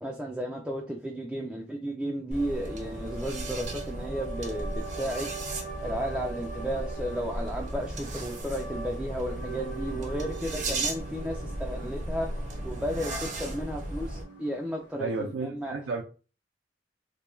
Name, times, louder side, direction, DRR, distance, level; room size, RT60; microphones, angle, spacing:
voice 1, 0.0-5.3 5.8-15.7, equal, 5° right, 0.3 m, -34 dB
sound 1, 2.3-15.3, right 4 dB, 70° left, 1.0 m, -43 dB
sound 2, 2.3-14.2, right 1 dB, 40° right, 0.6 m, -36 dB
voice 2, 15.0-16.0, right 3 dB, 80° right, 0.4 m, -32 dB
2.2 x 2.2 x 3.0 m
head